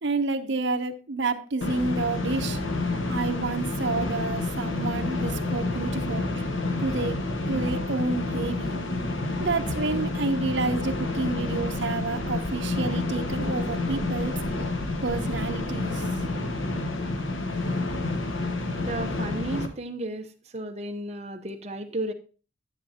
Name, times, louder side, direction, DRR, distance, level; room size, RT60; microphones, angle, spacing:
voice 1, 0.0-2.6 3.1-6.5 6.8-8.8 9.4-14.3 15.0-16.0, right 3 dB, 65° right, 7 dB, 0.9 m, -29 dB
sound 1, 1.6-19.7, left 2 dB, 75° left, 1.1 m, -29 dB
voice 2, 18.8-20.3 20.5-22.1, right 1 dB, 35° right, 5 dB, 0.9 m, -33 dB
10.0 x 8.1 x 2.9 m, 0.35 s
head